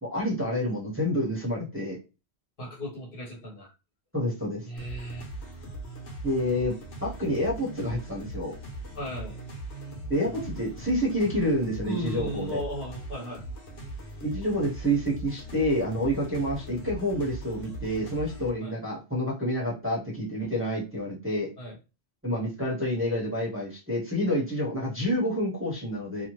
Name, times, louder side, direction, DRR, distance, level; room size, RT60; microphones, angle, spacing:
voice 1, 0.0-2.0 4.1-4.7 6.2-8.5 10.1-12.6 14.2-21.5 22.2-26.3, equal, 15° right, -4 dB, 0.8 m, -28 dB
voice 2, 2.6-3.7 4.6-5.2 8.9-9.4 11.8-13.4 18.6-18.7 21.6-21.8, equal, 55° left, -3 dB, 1.3 m, -36 dB
sound 1, 4.8-18.5, right 1 dB, 85° left, 1.2 m, -40 dB
2.7 x 2.2 x 3.0 m, 0.29 s
omnidirectional pair, 1.1 m